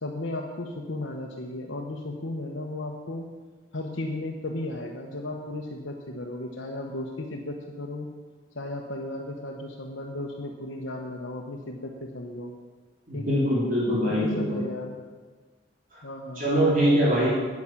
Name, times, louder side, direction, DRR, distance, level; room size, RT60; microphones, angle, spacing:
voice 1, 0.0-3.3 3.7-8.1 8.5-12.5 13.1-13.4 14.0-15.0 16.0-16.5, left 1 dB, 80° left, 0 dB, 1.1 m, -35 dB
voice 2, 13.1-14.6 15.9-16.0 16.3-17.3, equal, 45° right, -7 dB, 3.3 m, -23 dB
9.9 x 9.5 x 7.2 m, 1.4 s
head